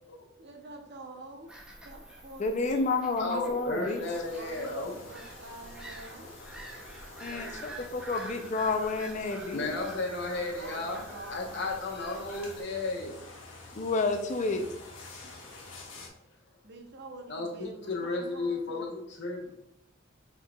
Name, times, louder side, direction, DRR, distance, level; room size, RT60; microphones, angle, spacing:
voice 1, 0.4-1.6 1.8-3.0 4.3-6.4 10.4-12.5 16.6-18.9, right 2 dB, 60° right, 3 dB, 0.8 m, -47 dB
Bird vocalization bird call bird song / Gull seagull, 1.5-12.6, right 1 dB, 5° right, 0.6 m, -48 dB
voice 2, 2.4-4.0 7.2-9.7 13.7-14.7, left 3 dB, 35° left, 4 dB, 0.4 m, -30 dB
voice 3, 3.2-5.0 7.3-7.5 9.3-11.0 11.3-13.2 15.2-15.3 17.3-19.5, left 3 dB, 60° left, 1 dB, 1.0 m, -34 dB
sound 1, 4.0-16.1, left 2 dB, 85° left, 1.1 m, -49 dB
4.6 x 4.5 x 2.3 m, 0.82 s
head